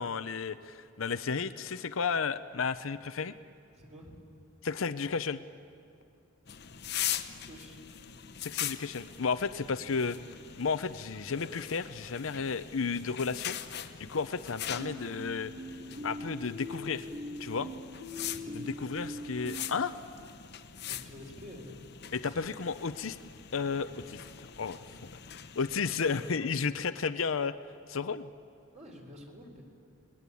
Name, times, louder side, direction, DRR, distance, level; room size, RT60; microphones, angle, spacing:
voice 1, 0.0-3.3 4.6-5.4 8.4-10.2 10.6-13.8 14.1-15.5 16.0-17.1 17.4-17.7 18.5-19.9 22.1-23.2 23.5-24.8 25.6-27.6 27.9-28.3, left 5 dB, 85° left, 12 dB, 0.7 m, -33 dB
voice 2, 3.7-4.2 7.5-7.8 18.2-18.7 20.9-21.9 22.2-22.6 24.6-25.0 26.0-26.5 28.7-29.6, equal, 35° right, 1 dB, 4.0 m, -49 dB
sound 1, 6.5-26.4, left 10 dB, 55° left, 0.9 m, -42 dB
sound 2, 14.8-19.9, equal, 55° right, 2.6 m, -42 dB
29.5 x 20.5 x 8.4 m, 2.4 s
head